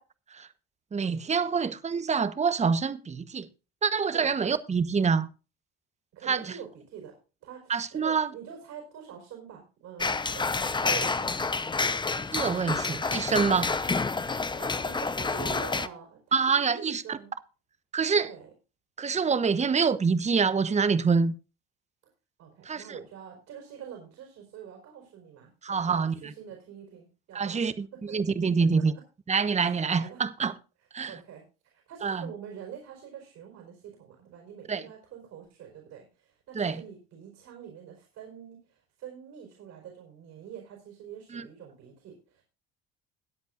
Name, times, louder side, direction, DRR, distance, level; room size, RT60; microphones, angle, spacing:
voice 1, 0.9-3.5 3.8-5.3 6.3-6.6 7.7-8.3 12.3-13.7 16.3-17.2 17.9-18.3 19.0-21.3 22.6-23.0 25.6-26.1 27.3-28.9 29.3-30.5 30.9-31.2 32.0-32.3 34.7-34.8 36.5-36.8 41.3-41.4, right 5 dB, 25° right, 1.0 m, -26 dB
voice 2, 4.1-4.6 6.1-11.3 14.5-17.3 18.1-18.5 22.4-27.6 27.9-28.2 28.6-29.0 29.6-30.2 31.1-42.4, right 8 dB, 60° right, 4.7 m, -45 dB
sound 1, 10.0-15.9, left 4 dB, 15° left, 0.8 m, -29 dB
21.5 x 8.1 x 2.5 m
hypercardioid pair, 65°, 30 cm